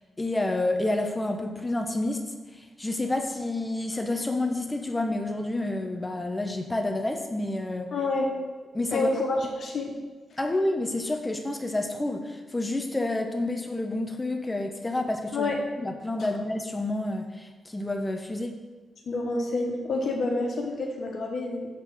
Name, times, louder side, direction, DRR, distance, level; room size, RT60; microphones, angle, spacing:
voice 1, 0.2-7.9 8.7-9.1 10.4-15.5 15.8-18.6, left 2 dB, 25° left, 4 dB, 1.0 m, -29 dB
voice 2, 7.9-8.3 8.9-10.0 15.3-15.6 19.0-21.7, left 2 dB, 70° left, 1 dB, 1.6 m, -28 dB
7.7 x 4.5 x 6.1 m, 1.3 s
supercardioid pair, 50°, 0 cm